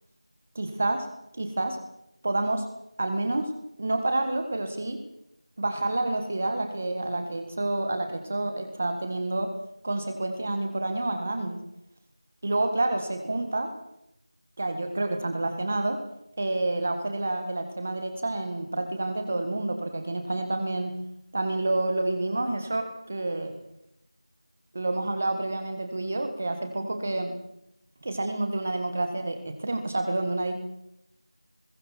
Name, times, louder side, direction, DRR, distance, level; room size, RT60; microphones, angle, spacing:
voice 1, 0.5-1.1 1.4-1.8 2.2-2.7 3.0-3.5 3.8-5.0 5.6-9.5 9.8-11.6 12.4-13.7 14.6-16.0 16.4-20.9 21.3-23.5 24.7-27.3 28.0-30.5, right 2 dB, 15° right, 7 dB, 1.6 m, -28 dB
29.0 x 22.0 x 4.5 m, 0.81 s
figure-of-eight pair, 180°, 3 cm